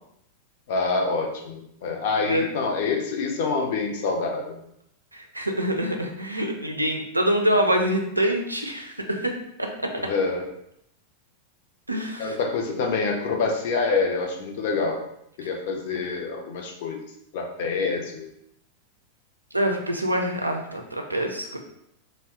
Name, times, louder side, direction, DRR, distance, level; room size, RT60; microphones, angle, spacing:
voice 1, 0.7-4.6 10.0-10.4 12.2-15.0 15.4-17.0 17.3-18.3, left 4 dB, 50° left, 2 dB, 0.5 m, -26 dB
voice 2, 5.1-9.9 11.9-12.4 19.5-21.6, right 1 dB, 85° right, 2 dB, 0.4 m, -25 dB
2.6 x 2.1 x 3.5 m, 0.76 s
figure-of-eight pair, 90°, 0 cm